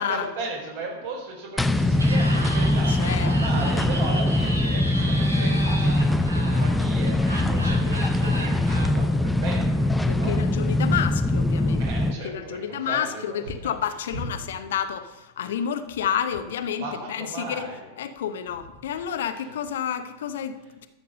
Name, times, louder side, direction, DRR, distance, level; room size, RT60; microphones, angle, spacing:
voice 1, 0.0-10.4 11.8-13.4 14.1-14.2 16.8-17.9, right 2 dB, 55° right, -1 dB, 4.3 m, -36 dB
sound 1, 1.6-12.1, left 1 dB, 5° left, 0.6 m, -22 dB
Laughter, 1.9-8.9, right 1 dB, 80° right, 1.9 m, -34 dB
voice 2, 2.9-3.8 7.4-7.7 10.1-11.9 12.2-17.7 18.0-20.9, left 8 dB, 60° left, 10 dB, 0.8 m, -30 dB
12.5 x 7.0 x 6.4 m, 1.1 s
figure-of-eight pair, 90°, 0 cm